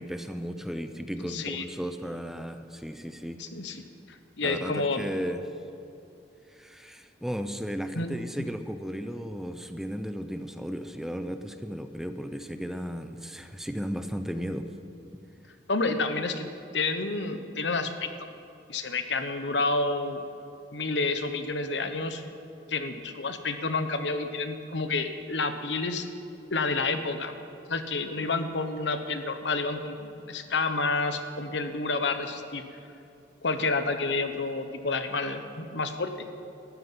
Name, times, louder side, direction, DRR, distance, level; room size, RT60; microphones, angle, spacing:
voice 1, 0.0-3.4 4.4-5.4 6.5-14.7 15.1-15.2, equal, ahead, 8 dB, 0.6 m, -35 dB
voice 2, 1.2-1.6 3.4-3.8 4.4-5.1 7.9-8.1 15.7-16.5 16.7-18.1 18.7-20.2 20.7-22.2 22.7-26.1 26.5-27.3 27.7-32.6 33.4-36.3, left 3 dB, 80° left, 8 dB, 1.1 m, -29 dB
13.0 x 9.5 x 9.6 m, 2.8 s
head